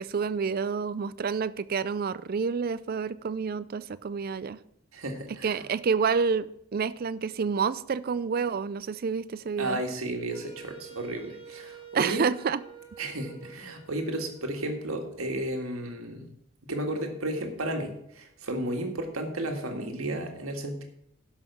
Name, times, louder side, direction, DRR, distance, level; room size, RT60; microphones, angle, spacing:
voice 1, 0.0-4.6 5.4-9.8 11.9-12.6, right 5 dB, 45° right, 0.4 m, -28 dB
voice 2, 4.9-5.6 9.6-12.2 13.0-16.3 16.6-20.8, right 1 dB, 75° right, 1.8 m, -33 dB
Wind instrument woodwind instrument, 10.3-15.2, right 6 dB, 25° left, 1.6 m, -48 dB
12.0 x 5.7 x 6.0 m
head